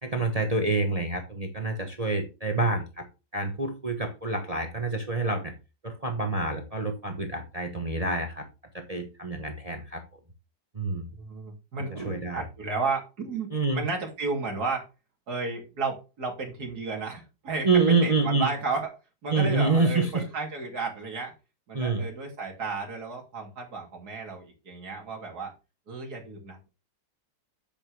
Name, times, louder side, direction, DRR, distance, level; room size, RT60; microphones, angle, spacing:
voice 1, 0.0-3.1 3.3-5.5 5.8-8.5 8.7-10.0 10.7-11.1 11.9-12.4 13.5-13.8 17.6-18.5 19.3-20.2 21.7-22.0, right 3 dB, 25° right, 5 dB, 1.1 m, -27 dB
voice 2, 11.1-14.9 15.3-17.7 18.0-18.9 19.2-21.3 21.7-25.5 25.9-26.7, right 4 dB, 60° right, 1 dB, 3.2 m, -33 dB
8.6 x 8.1 x 3.3 m, 0.28 s
omnidirectional pair, 1.9 m